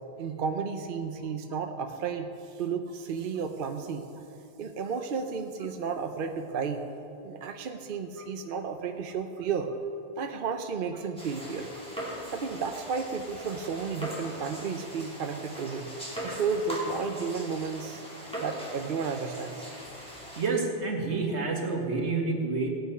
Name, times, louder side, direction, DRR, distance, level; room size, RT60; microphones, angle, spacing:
voice 1, 0.2-4.1 4.6-6.9 7.2-9.7 10.2-11.7 12.3-15.9 16.2-18.0 18.4-19.7, right 5 dB, 55° right, 6 dB, 0.8 m, -33 dB
sound 1, 11.2-20.5, equal, 5° left, 2.8 m, -40 dB
voice 2, 20.4-22.7, right 3 dB, 80° right, 0 dB, 2.0 m, -29 dB
16.0 x 9.0 x 5.5 m, 2.7 s
omnidirectional pair, 1.1 m